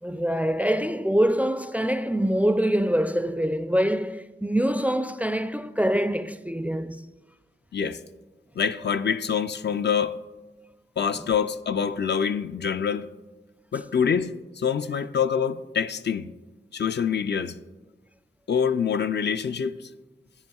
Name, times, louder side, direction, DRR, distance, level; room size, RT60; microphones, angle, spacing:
voice 1, 0.0-7.1 11.2-11.3, equal, 10° right, 0.3 m, -24 dB
voice 2, 8.6-10.1 11.0-13.1 13.7-16.3 16.7-17.6 18.5-19.9, left 7 dB, 65° left, 0.4 m, -25 dB
13.5 x 9.4 x 2.3 m
wide cardioid pair, 70°, 19 cm